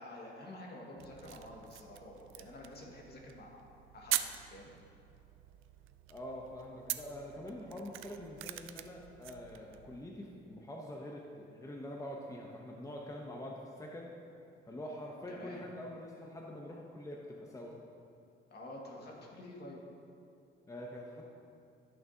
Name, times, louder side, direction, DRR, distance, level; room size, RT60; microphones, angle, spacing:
voice 1, 0.0-3.6 3.9-4.2 4.5-4.7 15.3-15.6 18.5-19.8, left 1 dB, 55° left, -2 dB, 1.9 m, -49 dB
sound 1, 1.0-10.1, right 13 dB, 85° right, 0.4 m, -43 dB
voice 2, 6.1-14.1 14.7-17.8 20.7-21.2, left 1 dB, 15° left, -1 dB, 0.9 m, -45 dB
14.5 x 6.2 x 2.8 m, 2.6 s
cardioid pair, 90°, 20 cm